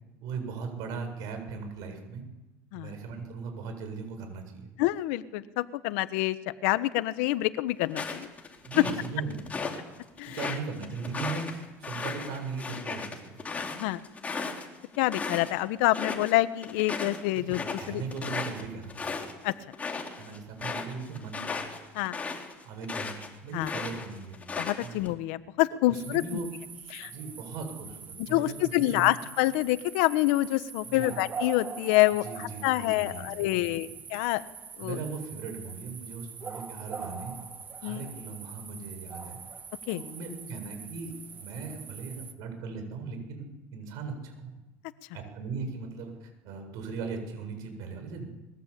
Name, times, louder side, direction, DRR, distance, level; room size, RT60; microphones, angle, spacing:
voice 1, 0.2-2.2 2.7-4.7 8.6-9.6 10.3-13.4 17.3-19.2 20.2-21.4 22.6-24.4 24.8-25.0 25.9-26.5 27.0-29.1 30.8-31.2 32.2-34.0 34.8-37.3 37.8-39.4 39.9-43.4 43.7-44.5 45.1-48.3, right 4 dB, 70° right, 6 dB, 7.6 m, -38 dB
voice 2, 4.8-6.4 6.6-8.3 10.2-10.4 13.7-14.0 15.0-18.0 19.4-19.5 21.9-22.2 23.5-23.7 24.6-26.4 26.9-27.1 28.2-34.4 34.8-35.0 37.8-38.0 39.9-40.0, left 17 dB, 85° left, 13 dB, 1.2 m, -27 dB
sound 1, 7.9-9.8 10.2-15.5 15.8-16.3 16.6-23.3 23.6-25.1, left 4 dB, 20° left, 4.0 m, -36 dB
sound 2, 26.0-42.3, right 6 dB, 30° right, 2.1 m, -43 dB
23.0 x 22.0 x 8.5 m, 1.0 s
cardioid pair, 125°, 7 cm